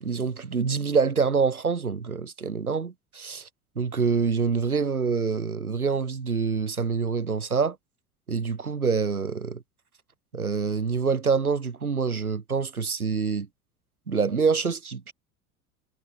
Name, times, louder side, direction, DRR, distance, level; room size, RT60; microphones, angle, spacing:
voice 1, 0.0-3.5 3.7-7.8 8.3-9.6 10.3-13.5 14.1-15.1, right 5 dB, 90° right, 1.7 m, -26 dB
figure-of-eight pair, 70°, 42 cm